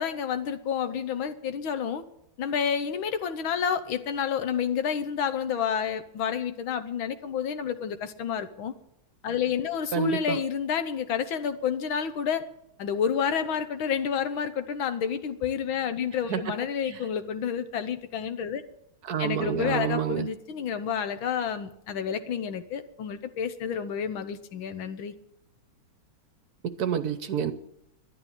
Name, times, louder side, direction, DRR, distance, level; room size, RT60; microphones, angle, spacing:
voice 1, 0.0-2.0 2.4-8.7 9.2-12.5 12.8-18.6 19.2-25.1, left 7 dB, 85° left, 10 dB, 1.9 m, -29 dB
voice 2, 9.9-10.4 16.3-16.4 16.9-17.0 19.1-20.3 26.8-27.5, right 7 dB, 60° right, 12 dB, 1.1 m, -28 dB
11.5 x 11.0 x 8.8 m, 0.79 s
omnidirectional pair, 2.2 m